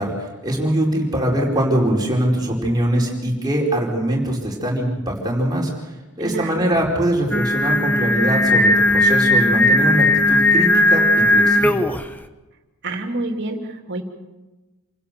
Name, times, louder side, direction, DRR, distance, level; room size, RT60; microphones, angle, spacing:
voice 1, 0.0-5.7 6.2-11.8, right 1 dB, 20° right, -3 dB, 4.6 m, -22 dB
voice 2, 6.2-6.6 12.8-14.0, right 2 dB, 50° right, 3 dB, 3.0 m, -28 dB
Singing, 7.3-12.1, left 1 dB, 10° left, 0.9 m, -16 dB
28.0 x 16.5 x 6.9 m, 1.1 s
head